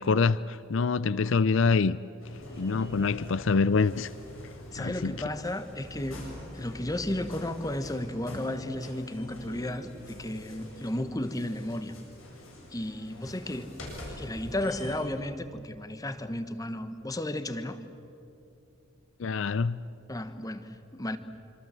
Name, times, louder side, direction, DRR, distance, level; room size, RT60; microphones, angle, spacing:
voice 1, 0.0-2.0 2.6-4.1 4.8-5.2 19.2-19.8, left 4 dB, 70° left, 0.5 m, -25 dB
sound 1, 2.2-15.0, left 1 dB, 90° left, 7.9 m, -44 dB
voice 2, 4.7-6.3 6.5-11.9 12.7-13.7 14.1-17.8 20.1-21.2, left 1 dB, 20° left, 1.2 m, -34 dB
26.0 x 26.0 x 7.6 m
head